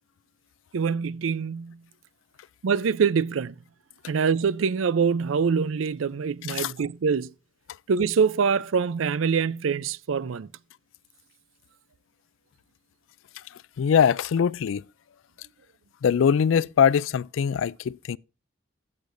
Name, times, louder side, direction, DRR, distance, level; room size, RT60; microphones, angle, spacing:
voice 1, 0.7-1.8 2.6-3.5 4.1-7.3 7.9-10.5, right 6 dB, 90° right, 0.5 m, -24 dB
voice 2, 13.8-14.8 16.0-18.2, left 7 dB, 80° left, 0.4 m, -22 dB
16.0 x 6.6 x 2.5 m
head